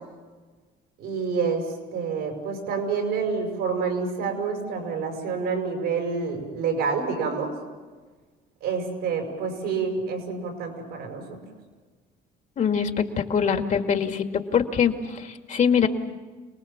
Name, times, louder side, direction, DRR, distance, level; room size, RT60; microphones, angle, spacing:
voice 1, 1.0-7.5 8.6-11.4, right 5 dB, 85° right, 3 dB, 7.0 m, -28 dB
voice 2, 12.6-15.9, left 7 dB, 45° left, 6 dB, 2.1 m, -23 dB
28.5 x 19.5 x 7.3 m, 1.4 s
cardioid pair, 110°, 17 cm